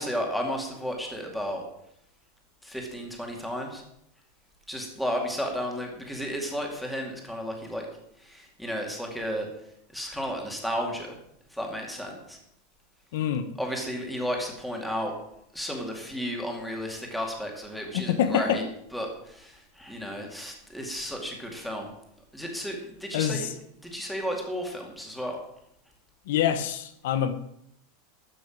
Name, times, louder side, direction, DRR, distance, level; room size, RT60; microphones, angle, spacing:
voice 1, 0.0-1.6 2.6-3.8 4.7-7.9 8.2-9.5 9.9-11.2 11.5-12.4 13.6-15.1 15.5-18.6 18.9-21.9 22.3-23.5 23.8-25.4, equal, ahead, 2.3 m, -33 dB
voice 2, 13.1-13.5 17.9-18.6 23.1-23.5 26.3-27.3, left 9 dB, 65° left, 1.0 m, -26 dB
13.5 x 6.2 x 8.7 m
supercardioid pair, 170°, 0 cm